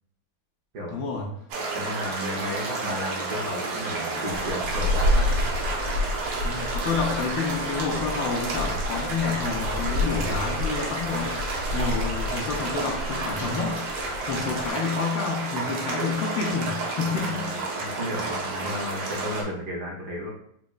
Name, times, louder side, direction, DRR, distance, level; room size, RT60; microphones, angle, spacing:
voice 1, 0.9-1.3 6.4-13.8 14.3-17.5, left 5 dB, 75° left, 0 dB, 1.2 m, -29 dB
sound 1, 1.5-19.4, right 3 dB, 80° right, 1.6 m, -31 dB
voice 2, 1.7-5.4 17.2-20.3, equal, 60° right, -2 dB, 1.2 m, -33 dB
sound 2, 4.3-14.7, left 2 dB, 90° left, 1.5 m, -30 dB
5.9 x 2.1 x 2.3 m, 0.69 s
omnidirectional pair, 2.3 m